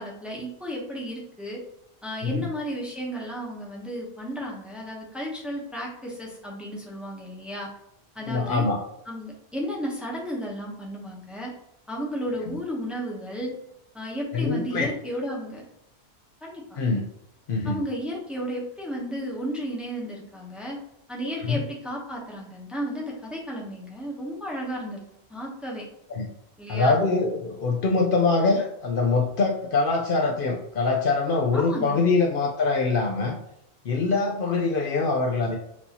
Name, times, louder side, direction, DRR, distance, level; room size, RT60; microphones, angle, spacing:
voice 1, 0.0-1.6 2.0-7.7 8.1-8.7 9.1-11.5 11.9-13.5 13.9-15.6 16.4-16.8 17.6-20.8 21.1-25.0 25.3-25.8 26.6-27.0 31.5-32.0, equal, ahead, -3 dB, 0.9 m, -33 dB
voice 2, 8.2-8.8 14.3-14.9 16.8-17.1 17.5-17.8 21.4-21.6 26.1-26.3 26.7-33.3 33.8-35.6, left 3 dB, 60° left, 0 dB, 0.7 m, -23 dB
6.0 x 2.7 x 2.9 m, 0.79 s
omnidirectional pair, 1.1 m